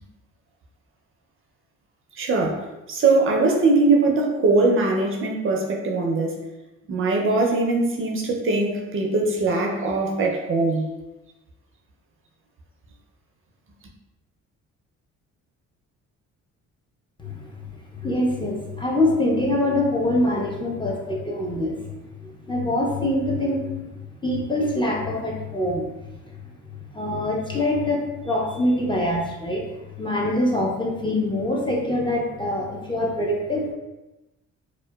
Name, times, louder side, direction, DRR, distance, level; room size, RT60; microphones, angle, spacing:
voice 1, 2.2-6.4 6.9-10.8, right 3 dB, 45° right, 1 dB, 0.4 m, -21 dB
voice 2, 17.2-21.8 22.2-23.9 24.2-25.8 26.9-29.7 30.0-33.7, left 1 dB, 15° left, -3 dB, 0.4 m, -24 dB
2.8 x 2.1 x 2.2 m, 1.0 s
cardioid pair, 90°, 30 cm